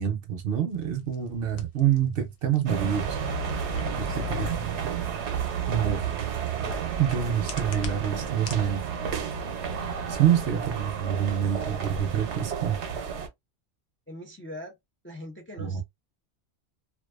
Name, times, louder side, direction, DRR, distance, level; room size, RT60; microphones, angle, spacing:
voice 1, 0.0-3.2 4.0-4.5 5.7-6.0 7.0-8.8 9.6-9.7 10.1-12.8 15.6-15.8, right 9 dB, 65° right, 0.7 m, -26 dB
sound 1, 0.7-8.7, left 4 dB, 70° left, 0.8 m, -47 dB
sound 2, 2.7-13.3, right 6 dB, 85° right, 0.9 m, -31 dB
voice 2, 4.0-4.6 10.3-10.5 14.1-14.8 15.0-15.8, left 1 dB, 20° left, 0.3 m, -41 dB
2.4 x 2.2 x 2.3 m
omnidirectional pair, 1.1 m